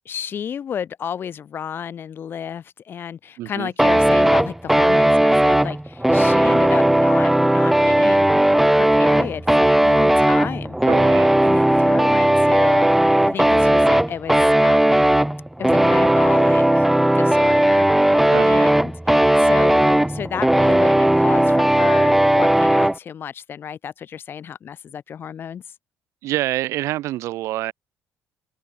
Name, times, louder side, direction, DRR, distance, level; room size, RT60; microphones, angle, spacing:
voice 1, 0.1-10.8 11.4-12.9 13.2-15.1 15.6-16.9 17.1-25.6, left 8 dB, 45° left, 0.6 m, -32 dB
voice 2, 3.4-3.7 10.8-11.4 18.3-18.7 26.2-27.7, right 15 dB, 70° right, 0.5 m, -26 dB
sound 1, 3.8-23.0, right 1 dB, 5° right, 0.3 m, -16 dB
supercardioid pair, 85°, 5 cm